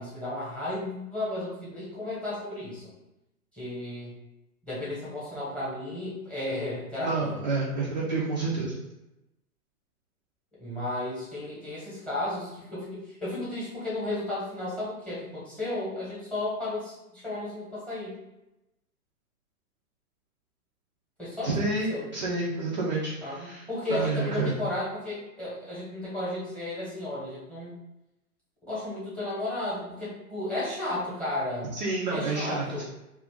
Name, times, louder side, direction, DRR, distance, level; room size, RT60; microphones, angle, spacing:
voice 1, 0.0-2.9 3.5-4.1 4.6-7.4 10.6-18.2 21.2-22.1 23.2-27.7 28.6-31.7 32.1-32.8, left 1 dB, 5° left, -8 dB, 1.0 m, -34 dB
voice 2, 7.0-8.8 21.4-24.5 31.7-32.8, right 3 dB, 30° right, -5 dB, 0.4 m, -29 dB
2.5 x 2.4 x 3.6 m, 0.92 s
hypercardioid pair, 130°, 45 cm